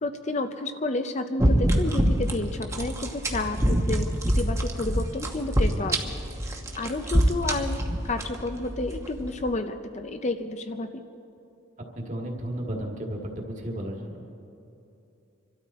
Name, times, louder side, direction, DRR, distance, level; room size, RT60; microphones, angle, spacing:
voice 1, 0.0-6.0 6.4-11.0, left 2 dB, 35° left, 8 dB, 0.6 m, -31 dB
sound 1, 1.4-9.5, right 1 dB, 15° right, 1.0 m, -26 dB
voice 2, 12.0-14.3, right 1 dB, 40° right, 1 dB, 1.9 m, -34 dB
25.5 x 13.0 x 4.2 m, 2.7 s
head